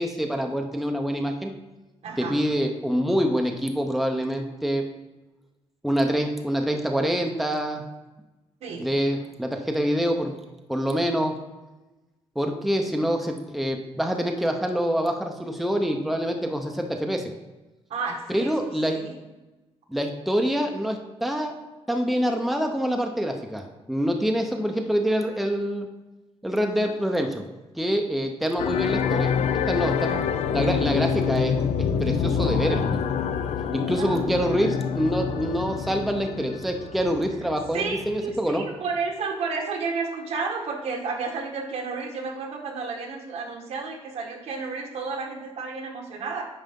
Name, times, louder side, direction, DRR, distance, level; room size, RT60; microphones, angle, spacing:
voice 1, 0.0-1.5 2.2-4.9 5.8-7.8 8.8-10.3 10.7-11.3 12.4-17.3 18.3-19.0 19.9-21.5 21.9-25.9 26.4-27.4 27.7-29.3 29.7-30.1 30.5-31.5 32.0-33.1 33.7-38.7, equal, ahead, 3 dB, 0.6 m, -26 dB
voice 2, 2.0-2.4 8.6-8.9 17.9-19.2 30.1-30.2 33.9-34.8 37.7-46.4, right 4 dB, 75° right, 1 dB, 1.4 m, -32 dB
sound 1, 28.6-38.3, left 7 dB, 75° left, 0.5 m, -26 dB
9.0 x 5.5 x 3.6 m, 1.1 s
wide cardioid pair, 155°, 11 cm